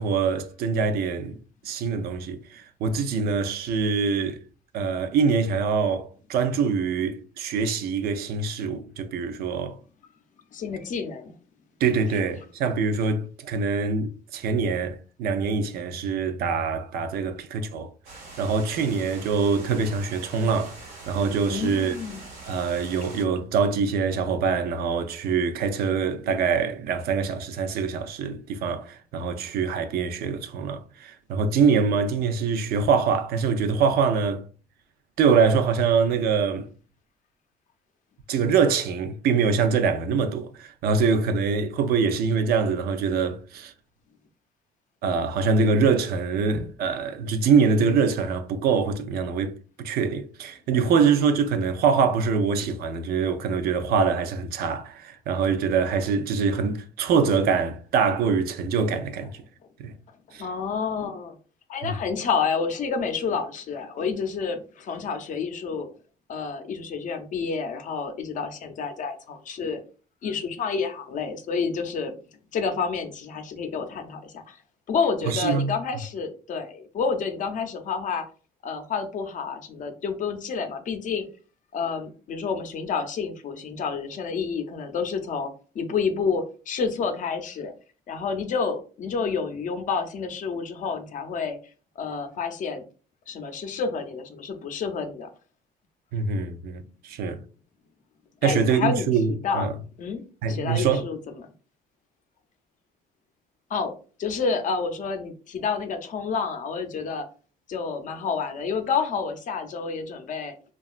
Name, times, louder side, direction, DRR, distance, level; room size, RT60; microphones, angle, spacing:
voice 1, 0.0-1.4 1.6-4.4 4.7-9.8 11.8-17.9 18.4-22.0 22.5-34.4 35.2-36.7 38.3-43.7 45.0-59.4 59.8-59.9 60.3-60.5 61.8-61.9 75.3-75.7 96.1-97.4 98.4-99.7 100.4-101.0, right 5 dB, 65° right, 0.4 m, -24 dB
voice 2, 10.5-11.3 21.5-22.2 60.4-61.4 61.7-65.9 66.3-69.8 70.2-72.1 72.5-74.6 74.9-78.2 78.6-81.3 81.7-87.7 88.1-91.6 92.0-92.8 93.3-95.3 98.4-99.1 99.4-99.7 100.0-100.2 100.5-101.5 103.7-107.2 107.7-110.5, left 5 dB, 50° left, 0.5 m, -29 dB
sound 1, 18.0-23.2, right 3 dB, 85° right, 1.0 m, -43 dB
2.7 x 2.3 x 2.4 m
cardioid pair, 110°, 17 cm